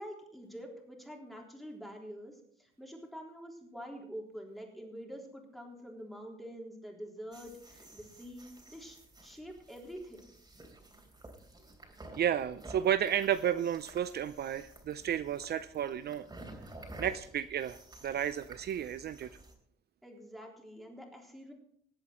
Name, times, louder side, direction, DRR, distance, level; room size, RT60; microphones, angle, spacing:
voice 1, 0.0-9.0 9.2-10.3 20.0-21.5, equal, ahead, 0 dB, 3.6 m, -46 dB
sound 1, 7.3-19.5, right 2 dB, 20° right, 3.2 m, -52 dB
voice 2, 12.1-16.3 17.0-19.3, right 9 dB, 55° right, 13 dB, 0.5 m, -32 dB
19.0 x 8.1 x 4.4 m, 0.65 s
cardioid pair, 90°, 20 cm